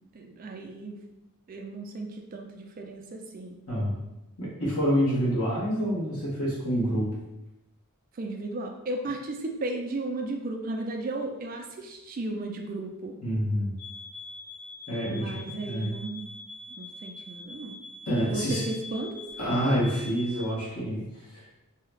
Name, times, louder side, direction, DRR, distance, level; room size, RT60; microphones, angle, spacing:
voice 1, 0.1-1.0 1.5-3.6 8.1-13.2 15.1-16.3 16.8-17.8 18.2-19.3, right 2 dB, 40° right, 2 dB, 0.4 m, -35 dB
voice 2, 3.7-4.0 4.4-7.1 13.2-13.8 14.9-15.3 15.6-16.0 18.1-18.6 19.4-21.4, equal, 80° left, -6 dB, 1.2 m, -27 dB
sound 1, 13.8-20.5, left 2 dB, 35° left, 0.7 m, -44 dB
2.7 x 2.3 x 3.2 m, 0.92 s
head